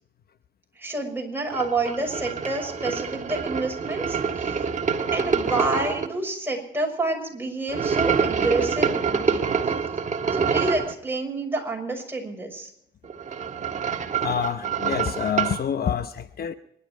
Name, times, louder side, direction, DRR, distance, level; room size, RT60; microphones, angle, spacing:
voice 1, 0.8-4.2 5.1-9.5 10.3-12.7, right 2 dB, 10° right, 1 dB, 6.1 m, -28 dB
sound 1, 1.5-6.1 7.7-10.9 13.0-15.6, right 6 dB, 40° right, 1.7 m, -26 dB
voice 2, 14.2-16.5, left 8 dB, 50° left, 11 dB, 0.9 m, -27 dB
26.5 x 11.5 x 4.6 m, 0.79 s
cardioid pair, 90°, 20 cm